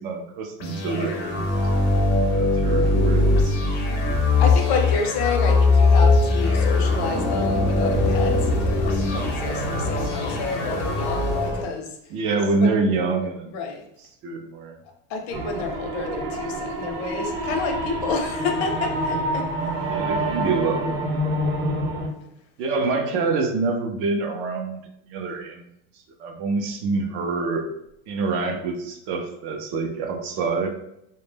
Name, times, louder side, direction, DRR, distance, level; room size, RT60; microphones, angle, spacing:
voice 1, 0.0-1.6 2.3-3.7 12.1-13.5 14.2-14.8 19.9-21.2 22.6-24.8 25.1-25.7 26.2-27.7 28.1-30.7, right 4 dB, 45° right, 4 dB, 0.4 m, -26 dB
sound 1, 0.6-11.6, left 3 dB, 35° left, 0.5 m, -21 dB
voice 2, 4.1-12.0 12.6-12.8 13.5-13.8 15.1-19.7, left 4 dB, 80° left, 3 dB, 0.6 m, -30 dB
sound 2, 15.3-22.1, right 1 dB, 70° right, 0.8 m, -27 dB
2.1 x 2.0 x 3.2 m, 0.78 s
supercardioid pair, 155°, 32 cm